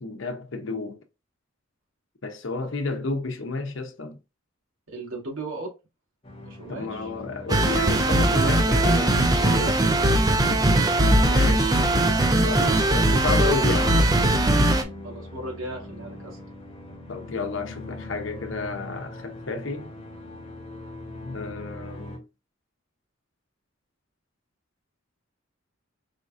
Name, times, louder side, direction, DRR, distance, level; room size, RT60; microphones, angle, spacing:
voice 1, 0.0-1.0 2.2-4.2 6.7-9.8 11.2-11.9 12.4-14.2 17.1-19.9 21.2-22.2, left 3 dB, 65° left, 0.8 m, -31 dB
voice 2, 4.9-5.7 6.4-7.1 9.5-10.2 10.6-10.7 15.0-16.4, right 2 dB, 85° right, 2.5 m, -36 dB
sound 1, 6.2-22.2, left 1 dB, 30° left, 1.1 m, -40 dB
sound 2, 7.5-14.8, right 1 dB, 20° right, 0.6 m, -20 dB
5.0 x 3.8 x 2.5 m
head